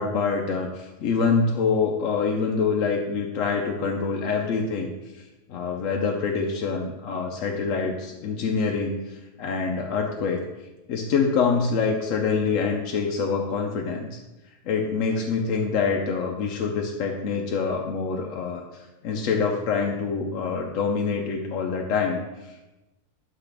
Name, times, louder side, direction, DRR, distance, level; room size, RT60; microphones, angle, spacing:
voice 1, 0.0-10.4 10.9-14.2 14.7-22.5, left 5 dB, 65° left, 1 dB, 0.9 m, -26 dB
8.0 x 4.9 x 3.4 m, 1.0 s
omnidirectional pair, 1.6 m